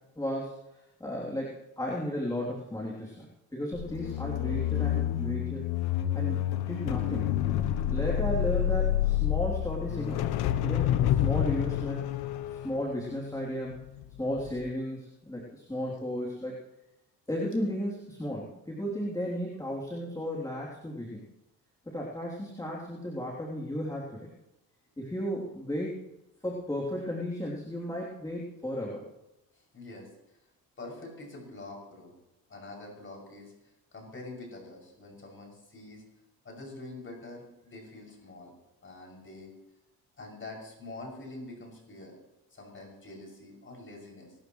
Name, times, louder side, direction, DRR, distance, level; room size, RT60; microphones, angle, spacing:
voice 1, 0.2-0.6 1.0-3.3 3.5-5.7 6.1-6.4 6.7-7.3 7.9-10.2 10.6-12.1 12.5-13.8 14.2-16.6 17.3-21.3 21.9-24.3 25.0-26.1 26.4-29.0, equal, 10° left, -4 dB, 3.2 m, -34 dB
sound 1, 3.7-14.0 14.4-14.7, left 12 dB, 90° left, 1.0 m, -29 dB
voice 2, 29.5-30.1 30.8-32.1 32.5-36.0 36.4-38.5 38.8-39.5 40.2-42.1 42.5-44.3, left 2 dB, 35° left, 0 dB, 6.7 m, -45 dB
25.0 x 13.0 x 3.2 m, 0.91 s
cardioid pair, 100°, 37 cm